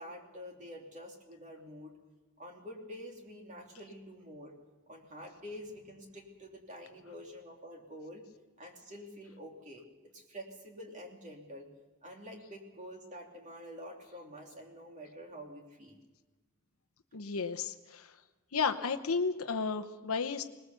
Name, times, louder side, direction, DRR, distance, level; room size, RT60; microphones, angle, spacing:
voice 1, 0.0-2.0 2.4-4.6 4.9-8.2 8.6-9.8 10.1-11.7 12.0-16.0, equal, 35° right, 1 dB, 2.9 m, -47 dB
voice 2, 17.1-18.2 18.5-20.4, left 5 dB, 85° left, 8 dB, 1.0 m, -33 dB
21.0 x 20.0 x 6.9 m, 1.2 s
head